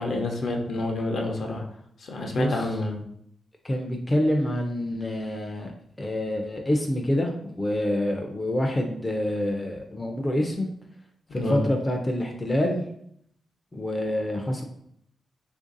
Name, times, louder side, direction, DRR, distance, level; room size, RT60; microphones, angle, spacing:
voice 1, 0.0-1.6 2.0-3.0 11.4-11.6, left 2 dB, 60° left, 2 dB, 0.6 m, -28 dB
voice 2, 2.3-2.6 3.6-5.7 6.0-10.7 11.3-12.8 13.7-14.6, left 1 dB, 15° left, 1 dB, 0.4 m, -26 dB
3.2 x 2.5 x 3.8 m, 0.69 s
wide cardioid pair, 165°, 0 cm